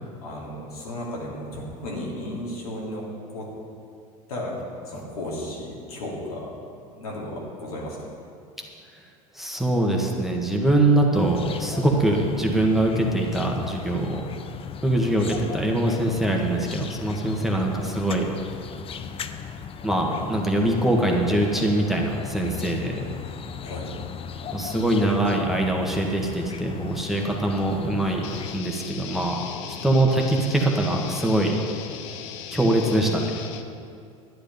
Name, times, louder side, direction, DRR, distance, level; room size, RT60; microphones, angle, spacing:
voice 1, 0.2-3.1 3.3-3.5 4.3-4.6 4.8-6.5 6.9-8.0 17.8-17.9 23.6-23.9, left 1 dB, 85° left, -4 dB, 2.9 m, -34 dB
voice 2, 9.3-14.2 14.8-18.3 19.8-23.1 24.5-28.3 28.5-31.6 32.5-33.3, right 1 dB, ahead, 0 dB, 1.6 m, -23 dB
sound 1, 11.1-28.6, left 7 dB, 30° left, 0.7 m, -37 dB
sound 2, 28.2-33.6, left 8 dB, 65° left, 0.8 m, -37 dB
10.5 x 10.0 x 5.4 m, 2.4 s
hypercardioid pair, 85°, 18 cm